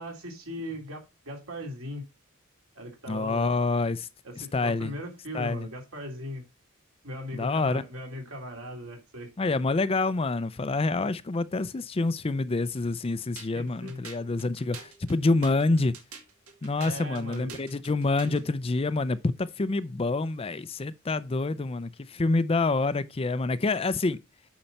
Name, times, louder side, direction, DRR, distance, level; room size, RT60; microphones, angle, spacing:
voice 1, 0.0-2.0 2.7-3.6 4.2-6.4 7.0-9.3 13.5-14.0 16.8-17.7 18.2-18.4, equal, 70° right, 3.2 m, -39 dB
voice 2, 3.1-4.1 4.4-4.9 5.3-5.7 7.3-7.8 9.4-16.0 16.6-24.2, left 3 dB, 25° left, 0.4 m, -27 dB
sound 1, 13.4-18.5, right 5 dB, 85° right, 2.3 m, -47 dB
8.8 x 5.6 x 4.1 m
head